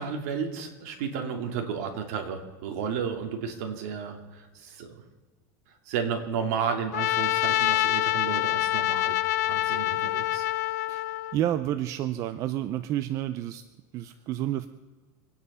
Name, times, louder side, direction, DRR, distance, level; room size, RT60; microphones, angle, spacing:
voice 1, 0.0-5.0 5.9-9.2 9.5-10.4, right 6 dB, 65° right, 4 dB, 2.8 m, -32 dB
Trumpet, 6.9-11.4, left 16 dB, 75° left, 0.6 m, -26 dB
voice 2, 11.3-13.6 13.9-14.7, right 12 dB, 35° right, 11 dB, 0.6 m, -29 dB
25.5 x 9.8 x 5.6 m, 1.4 s
supercardioid pair, 155°, 9 cm